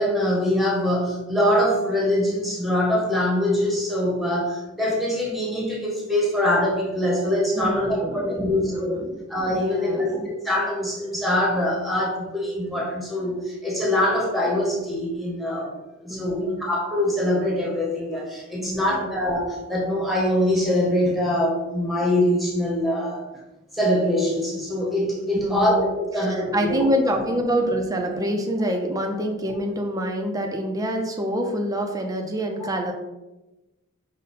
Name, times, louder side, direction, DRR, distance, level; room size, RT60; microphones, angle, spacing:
voice 1, 0.0-9.0 9.3-23.3 23.7-25.8 26.1-26.8, left 1 dB, ahead, -4 dB, 0.8 m, -23 dB
voice 2, 7.5-9.2 9.5-10.3 16.1-16.6 18.6-19.1 25.3-25.7 26.2-32.9, equal, 15° right, 2 dB, 0.4 m, -26 dB
5.1 x 2.1 x 4.1 m, 1.0 s
head